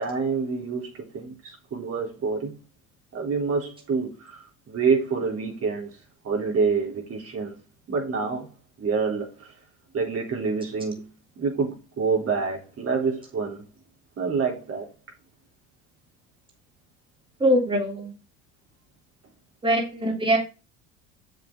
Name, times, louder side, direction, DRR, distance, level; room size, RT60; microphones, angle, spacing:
voice 1, 0.0-2.5 3.1-4.4 4.7-5.9 6.2-7.6 7.9-8.5 8.8-9.3 9.9-11.1 11.4-13.6 14.2-14.9, right 5 dB, 45° right, 3.7 m, -27 dB
voice 2, 17.4-18.1 19.6-20.4, equal, 15° right, 3.5 m, -22 dB
7.5 x 7.0 x 3.8 m
supercardioid pair, 90°, 33 cm